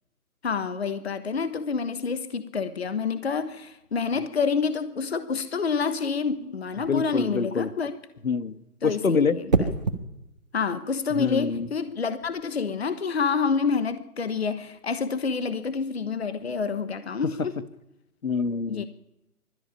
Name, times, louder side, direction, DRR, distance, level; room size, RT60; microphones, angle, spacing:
voice 1, 0.4-7.9 8.8-9.7 10.5-17.5 18.7-18.9, left 5 dB, 45° left, 1.4 m, -28 dB
sound 1, 6.7-7.0 9.5-10.0 12.0-12.3, right 4 dB, 30° right, 1.5 m, -25 dB
voice 2, 6.9-7.7 8.2-8.6 8.8-9.4 11.2-11.7 18.2-18.9, left 5 dB, 60° left, 1.5 m, -25 dB
21.0 x 14.0 x 8.9 m
hypercardioid pair, 170°, 46 cm